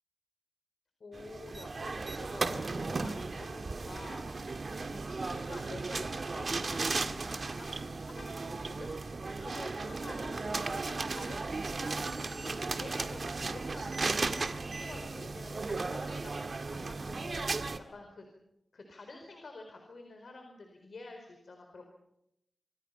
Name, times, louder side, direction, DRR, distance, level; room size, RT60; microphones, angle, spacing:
voice 1, 1.0-4.5 4.7-10.4 10.7-16.4 16.7-18.2 18.7-21.9, left 3 dB, 80° left, 4 dB, 4.4 m, -49 dB
sound 1, 1.1-17.8, right 3 dB, 60° right, 1.8 m, -35 dB
27.0 x 25.5 x 5.8 m, 0.81 s
wide cardioid pair, 70°, 0 cm